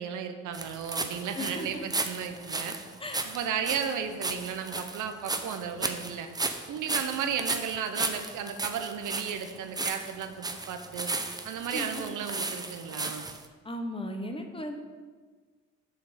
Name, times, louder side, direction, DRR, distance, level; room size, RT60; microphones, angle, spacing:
voice 1, 0.0-2.8 3.2-6.3 6.7-11.1 11.4-13.3, right 7 dB, 80° right, 7 dB, 0.9 m, -34 dB
sound 1, 0.5-13.4, right 3 dB, 15° right, 0.6 m, -35 dB
voice 2, 1.3-1.8 3.0-3.3 11.7-12.0 13.6-14.8, left 1 dB, 20° left, 4 dB, 1.0 m, -36 dB
6.9 x 6.7 x 5.1 m, 1.5 s
cardioid pair, 90°, 30 cm